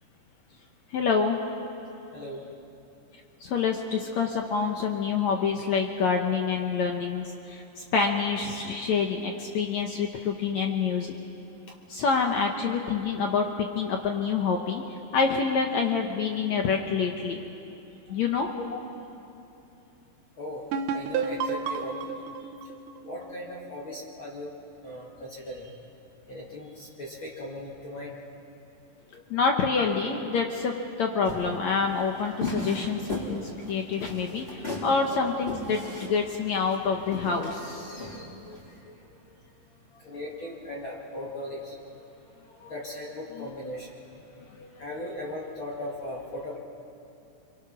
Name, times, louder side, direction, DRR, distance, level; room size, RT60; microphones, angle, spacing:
voice 1, 0.9-1.4 3.4-7.2 7.5-7.6 7.9-11.1 11.9-13.5 13.7-14.8 15.1-17.4 18.1-18.5 29.1-33.4 33.7-34.4 34.8-35.8 36.1-38.6 42.6-42.7 43.3-43.5 44.6-44.7, left 5 dB, 75° left, 3 dB, 1.6 m, -27 dB
voice 2, 2.1-2.5 18.1-18.2 20.4-22.5 23.0-24.5 24.8-25.8 26.3-28.2 35.1-35.3 37.9-38.2 38.7-38.9 40.0-41.8 42.7-44.0 44.8-46.6, left 1 dB, 40° left, -4 dB, 2.2 m, -38 dB
sound 1, 20.7-24.3, right 5 dB, 75° right, 2.0 m, -32 dB
sound 2, 31.2-38.7, left 2 dB, 15° left, 3.8 m, -36 dB
29.5 x 23.5 x 6.0 m, 2.8 s
omnidirectional pair, 4.7 m